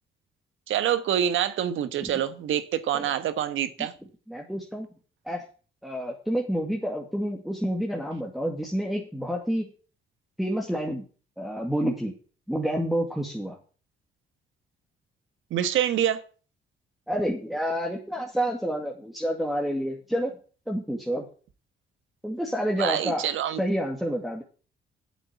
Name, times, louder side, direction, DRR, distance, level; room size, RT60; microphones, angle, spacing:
voice 1, 0.7-3.9 15.5-16.2 22.8-23.6, right 10 dB, 80° right, 1.4 m, -26 dB
voice 2, 4.3-4.9 5.3-5.4 5.8-9.7 10.4-11.0 11.4-12.1 12.5-13.6 17.1-20.4 20.7-21.2 22.2-23.3 23.6-24.4, equal, ahead, 2.2 m, -29 dB
8.2 x 7.9 x 8.4 m
cardioid pair, 90°, 20 cm